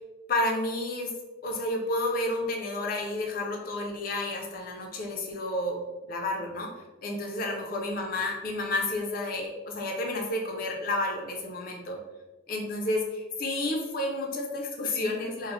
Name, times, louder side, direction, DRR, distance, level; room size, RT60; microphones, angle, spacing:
voice 1, 0.3-1.1 1.4-6.7 7.0-12.0 12.5-15.5, left 2 dB, 45° left, 1 dB, 0.4 m, -31 dB
3.0 x 2.0 x 3.0 m, 1.2 s
head